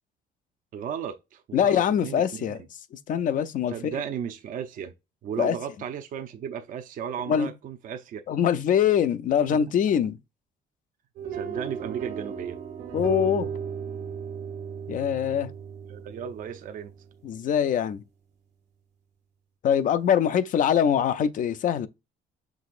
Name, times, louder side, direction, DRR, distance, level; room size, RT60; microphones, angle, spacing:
voice 1, 0.7-2.6 3.7-4.9 5.2-8.2 9.5-9.6 11.3-12.6 15.9-16.9, right 8 dB, 50° right, 0.6 m, -35 dB
voice 2, 1.5-2.6 2.9-3.9 5.4-5.6 7.3-7.5 8.3-10.2 12.9-13.5 14.9-15.5 17.2-18.0 19.6-21.9, left 8 dB, 50° left, 0.5 m, -23 dB
sound 1, 11.2-17.4, right 7 dB, 85° right, 1.3 m, -35 dB
6.1 x 2.9 x 2.5 m
cardioid pair, 110°, 17 cm